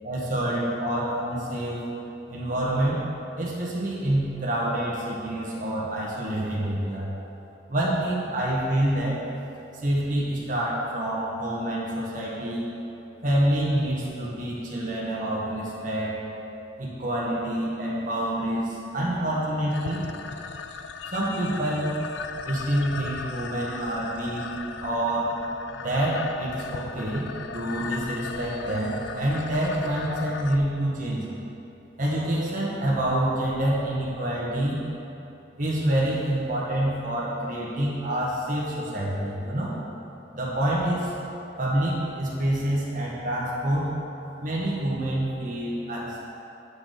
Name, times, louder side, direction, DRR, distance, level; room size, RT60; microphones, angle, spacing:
voice 1, 0.0-1.8 2.3-3.0 3.3-7.1 7.7-9.2 9.8-12.6 13.2-16.2 16.8-20.0 21.0-21.9 22.4-24.4 24.8-25.3 25.8-27.2 27.5-31.2 32.0-34.8 35.6-39.7 40.3-41.1 41.6-43.9 44.4-46.2, right 1 dB, 45° right, -5 dB, 1.5 m, -27 dB
sound 1, 19.7-30.6, left 5 dB, 75° left, 0.4 m, -37 dB
8.4 x 6.5 x 5.1 m, 2.9 s
head